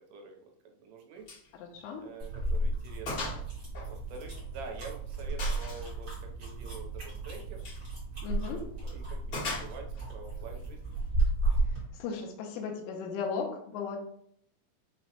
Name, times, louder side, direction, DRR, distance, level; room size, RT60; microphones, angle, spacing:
voice 1, 0.7-1.3 1.9-3.3 3.9-6.1 6.4-7.6 8.4-10.9, right 4 dB, 85° right, 2 dB, 2.6 m, -47 dB
Gunshot gunfire, 1.3-1.5 1.8-1.9 2.4-2.5 3.1-3.4 3.7-4.7 5.4-5.9 7.5-7.8 9.3-10.1, left 3 dB, 55° left, 1.1 m, -38 dB
voice 2, 1.6-2.1 8.2-8.6 11.7-14.0, left 6 dB, 80° left, 1 dB, 2.1 m, -36 dB
sound 1, 2.2-11.9, right 2 dB, 55° right, 1.0 m, -33 dB
6.1 x 2.0 x 2.8 m, 0.66 s
omnidirectional pair, 4.5 m